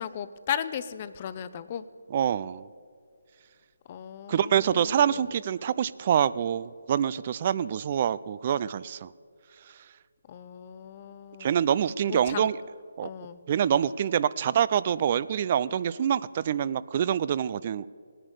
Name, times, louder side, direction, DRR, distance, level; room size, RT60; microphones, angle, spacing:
voice 1, 0.0-1.9 3.9-5.3 10.3-11.6 12.1-12.5 13.0-13.4 13.7-13.8, left 9 dB, 30° left, 14 dB, 0.6 m, -36 dB
voice 2, 2.1-2.7 4.3-9.1 11.4-12.6 13.0-13.1 13.5-17.9, right 9 dB, 35° right, 18 dB, 0.4 m, -26 dB
18.5 x 9.9 x 6.6 m, 2.1 s
figure-of-eight pair, 155°, 0 cm